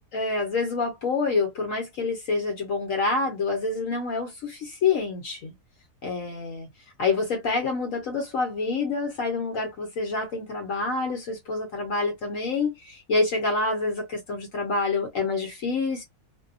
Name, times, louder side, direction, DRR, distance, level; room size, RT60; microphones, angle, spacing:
voice 1, 0.0-5.5 6.0-6.7 7.0-16.0, left 3 dB, 60° left, 1.0 m, -27 dB
2.7 x 2.2 x 2.4 m
omnidirectional pair, 1.7 m